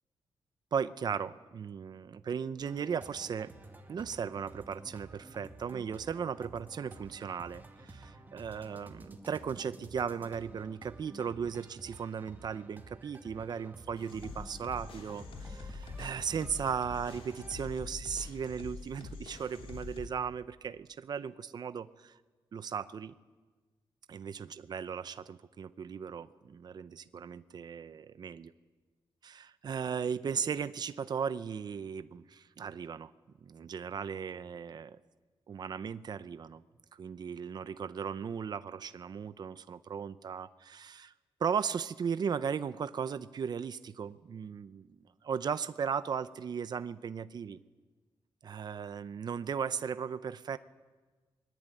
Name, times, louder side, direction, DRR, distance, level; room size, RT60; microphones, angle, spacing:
voice 1, 0.7-3.5 3.9-22.2 22.5-23.1 24.1-28.5 29.2-33.1 33.4-35.0 35.5-36.6 36.9-41.1 41.4-47.6 48.4-50.6, right 7 dB, 45° right, 13 dB, 0.7 m, -37 dB
sound 1, 2.6-17.7, right 2 dB, 20° right, 2.2 m, -52 dB
sound 2, 13.9-20.1, left 4 dB, 75° left, 3.4 m, -45 dB
23.0 x 21.5 x 9.1 m, 1.3 s
wide cardioid pair, 160°, 9 cm